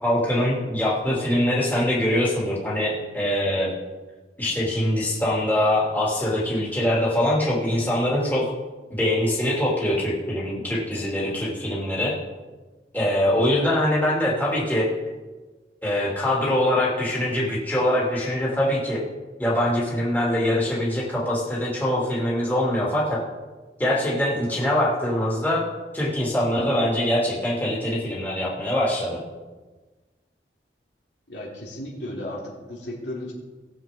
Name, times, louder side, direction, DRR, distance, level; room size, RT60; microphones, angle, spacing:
voice 1, 0.0-3.7 4.4-8.5 8.9-12.1 12.9-14.9 15.8-19.0 19.4-23.2 23.8-25.6 25.9-29.2, left 1 dB, 10° left, -6 dB, 2.9 m, -23 dB
voice 2, 31.3-33.3, left 1 dB, 75° left, -3 dB, 3.2 m, -34 dB
19.5 x 7.5 x 3.8 m, 1.3 s
head